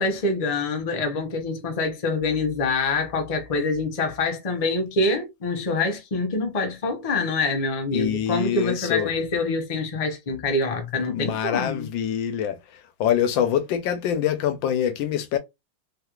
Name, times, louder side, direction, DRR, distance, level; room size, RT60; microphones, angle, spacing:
voice 1, 0.0-11.9, left 3 dB, 55° left, 0.4 m, -25 dB
voice 2, 7.9-9.1 11.1-15.4, left 9 dB, 85° left, 1.3 m, -25 dB
3.5 x 2.9 x 2.4 m
omnidirectional pair, 2.1 m